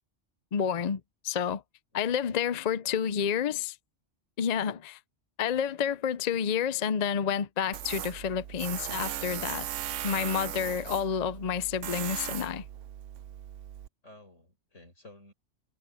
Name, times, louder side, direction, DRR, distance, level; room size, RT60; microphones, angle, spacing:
voice 1, 0.5-1.6 1.9-3.8 4.4-5.0 5.4-9.7 10.0-12.6, left 8 dB, 45° left, 0.5 m, -29 dB
voice 2, 1.9-3.0 14.0-15.3, left 2 dB, 80° left, 6.9 m, -55 dB
Tools, 7.7-13.9, right 12 dB, 85° right, 0.9 m, -38 dB
omnidirectional pair, 1.2 m